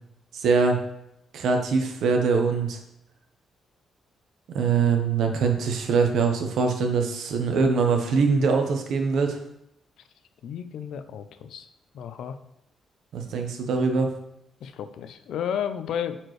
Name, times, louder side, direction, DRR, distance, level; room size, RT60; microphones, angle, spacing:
voice 1, 0.3-0.8 1.3-2.8 4.5-9.4 13.1-14.1, right 5 dB, 65° right, 4 dB, 1.0 m, -23 dB
voice 2, 10.4-11.7 11.9-12.4 14.6-16.2, left 8 dB, 70° left, 10 dB, 0.5 m, -32 dB
9.0 x 4.4 x 3.2 m, 0.81 s
cardioid pair, 175°, 0 cm